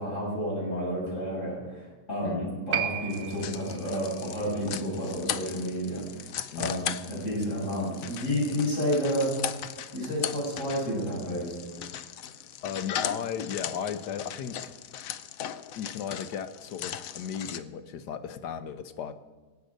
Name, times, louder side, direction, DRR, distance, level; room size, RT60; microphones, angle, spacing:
voice 1, 0.0-9.6 9.9-11.6, equal, 50° left, -5 dB, 6.9 m, -31 dB
Piano, 2.7-9.7 9.9-10.0, right 9 dB, 75° right, 1.1 m, -39 dB
sound 1, 3.1-17.6, left 9 dB, 65° left, 1.0 m, -38 dB
voice 2, 12.6-14.7 15.8-19.1, left 8 dB, 85° left, 11 dB, 1.5 m, -35 dB
24.5 x 8.3 x 5.2 m, 1.3 s
omnidirectional pair, 1.7 m